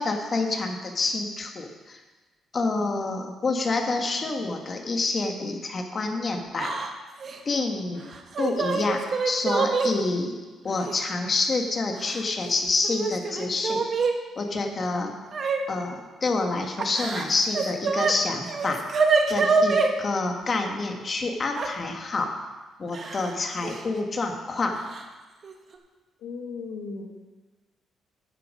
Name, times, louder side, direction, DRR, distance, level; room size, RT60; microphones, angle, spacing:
voice 1, 0.0-2.0 2.5-6.7 7.4-8.0 8.4-10.4 10.6-13.8 14.4-15.2 15.7-18.8 19.3-22.3 22.8-24.8, left 3 dB, 40° left, 3 dB, 1.5 m, -27 dB
Yell / Crying sobbing, 6.6-6.9 7.2-7.4 8.1-9.9 10.9-11.0 12.0-12.5 12.8-14.1 15.3-15.6 16.8-18.1 18.4-19.9 21.6-21.7 22.9-23.3 23.6-23.8 24.9-25.0 25.4-25.8, right 4 dB, 50° right, 1.0 m, -25 dB
voice 2, 26.2-27.0, left 4 dB, 90° left, 1 dB, 1.3 m, -36 dB
10.0 x 7.7 x 5.3 m, 1.3 s
cardioid pair, 90°, 0 cm